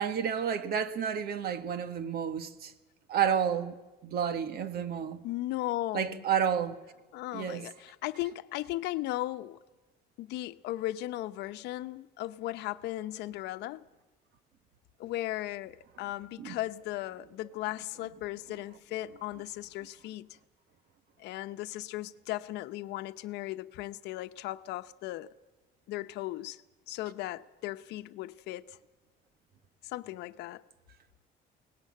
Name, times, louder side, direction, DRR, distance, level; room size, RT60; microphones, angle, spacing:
voice 1, 0.0-2.7 3.1-3.8 4.0-5.2 5.9-6.8 7.3-7.6 16.4-16.6, right 8 dB, 65° right, 1.6 m, -30 dB
voice 2, 5.2-6.2 7.1-9.6 10.2-13.9 15.0-20.3 21.2-25.3 25.9-26.6 26.9-28.8 29.8-30.6, left 16 dB, 85° left, 0.8 m, -37 dB
22.0 x 18.5 x 8.6 m
cardioid pair, 110°, 17 cm